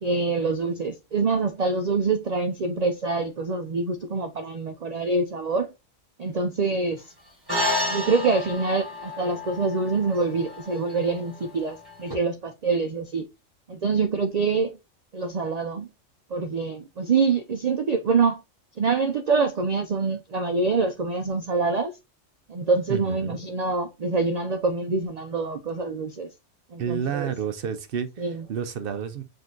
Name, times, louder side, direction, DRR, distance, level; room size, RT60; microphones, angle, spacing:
voice 1, 0.0-5.7 6.2-7.0 7.9-13.3 13.7-14.7 15.1-15.9 16.3-18.4 18.8-21.9 22.5-26.3 26.7-27.3 28.2-28.4, right 4 dB, 75° right, 0.3 m, -25 dB
sound 1, 7.5-12.1, left 2 dB, 20° right, 2.1 m, -31 dB
voice 2, 22.9-23.4 26.8-29.2, right 7 dB, 60° right, 0.7 m, -30 dB
5.2 x 2.6 x 3.7 m
omnidirectional pair, 1.3 m